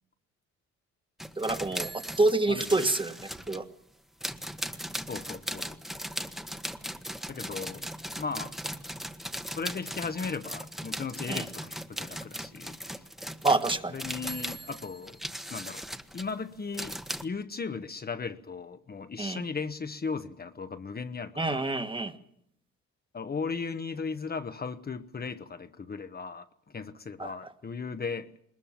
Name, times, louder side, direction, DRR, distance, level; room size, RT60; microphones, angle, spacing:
sound 1, 1.2-3.6 4.2-17.2, equal, ahead, 1.3 m, -38 dB
voice 1, 1.4-3.2 3.5-3.6 11.3-11.4 13.4-13.9 19.2-19.4 21.4-22.1 27.2-27.3, right 2 dB, 15° right, 8 dB, 1.6 m, -27 dB
voice 2, 5.1-5.8 7.3-8.5 9.6-13.0 13.9-15.2 15.5-15.8 16.1-17.0 17.2-21.6 23.1-28.4, left 5 dB, 30° left, 9 dB, 1.1 m, -37 dB
20.5 x 20.5 x 7.5 m, 0.72 s
cardioid pair, 90°, 30 cm